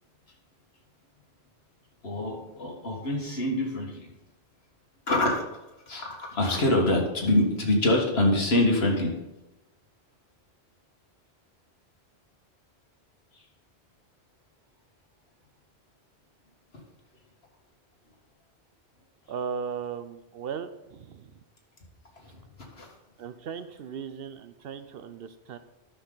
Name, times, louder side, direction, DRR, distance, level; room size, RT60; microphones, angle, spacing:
voice 1, 2.0-4.1 5.1-5.5 5.9-9.1 13.3-13.4 22.2-22.4 22.7-22.9, left 1 dB, 65° left, 0 dB, 1.9 m, -25 dB
voice 2, 19.3-21.4 23.2-25.6, right 6 dB, 65° right, 11 dB, 0.7 m, -37 dB
11.5 x 6.3 x 3.9 m, 0.96 s
omnidirectional pair, 1.1 m